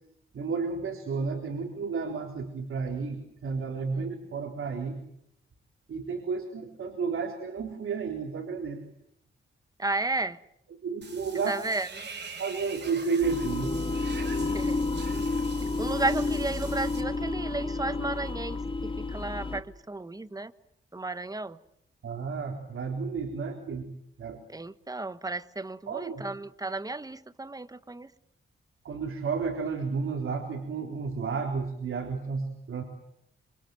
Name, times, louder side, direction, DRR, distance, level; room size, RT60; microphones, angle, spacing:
voice 1, 0.3-5.0 5.9-8.8 10.8-11.5 12.4-13.7 22.0-23.9 24.2-24.4 25.9-26.3 28.8-32.8, right 5 dB, 80° right, 3.9 m, -32 dB
voice 2, 9.8-10.4 11.5-12.1 14.5-14.8 15.8-20.5 20.9-21.6 24.5-28.1, right 2 dB, 15° right, 1.3 m, -33 dB
Water / Bathtub (filling or washing), 11.0-17.0, right 4 dB, 55° right, 5.5 m, -44 dB
sound 1, 13.2-19.6, left 3 dB, 25° left, 2.2 m, -30 dB
27.0 x 26.0 x 7.8 m
wide cardioid pair, 110°, 21 cm